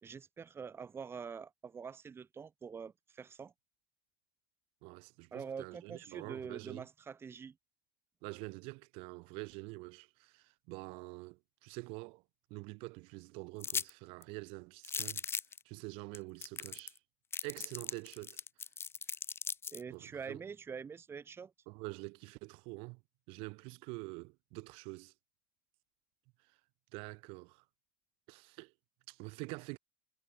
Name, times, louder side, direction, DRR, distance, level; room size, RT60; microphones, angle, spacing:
voice 1, 0.0-3.5 5.3-7.5 19.7-21.5, right 6 dB, 25° right, 1.9 m, -45 dB
voice 2, 4.8-6.9 8.2-12.2 12.5-15.2 15.7-17.0 17.4-18.4 19.9-20.4 21.7-23.0 23.3-25.1 26.9-27.6 28.3-28.7 29.1-29.8, right 28 dB, 65° right, 2.4 m, -46 dB
sound 1, 13.6-13.9 14.2-14.3 14.8-15.6 16.1-16.2 16.4-17.0 17.3-19.8, left 6 dB, 25° left, 1.2 m, -38 dB
supercardioid pair, 110°, 10 cm